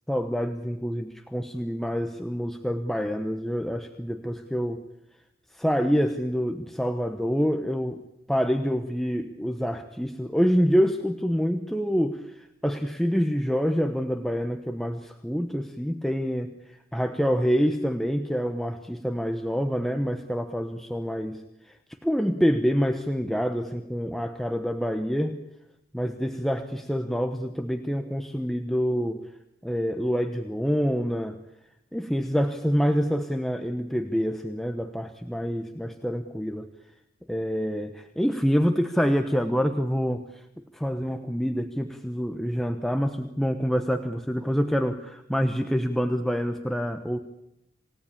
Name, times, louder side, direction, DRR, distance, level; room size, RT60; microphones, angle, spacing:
voice 1, 0.1-4.8 5.5-8.0 8.3-25.4 25.9-29.2 29.6-31.4 31.9-36.7 37.3-40.4 40.7-47.2, equal, ahead, 5 dB, 1.0 m, -26 dB
28.0 x 17.5 x 8.5 m, 0.86 s
head